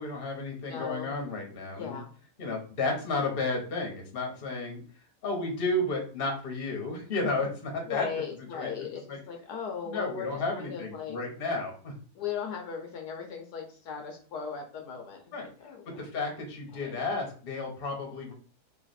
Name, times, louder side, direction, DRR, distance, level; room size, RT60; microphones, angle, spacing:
voice 1, 0.0-2.0 2.4-4.8 5.2-8.1 8.5-8.7 9.1-9.2 9.9-11.9 15.3-18.3, left 2 dB, 40° left, 1 dB, 1.1 m, -32 dB
voice 2, 0.7-1.1 1.7-2.1 7.9-11.2 12.1-16.0 16.7-17.0, left 6 dB, 70° left, 3 dB, 1.2 m, -38 dB
3.2 x 2.9 x 4.1 m, 0.41 s
omnidirectional pair, 1.8 m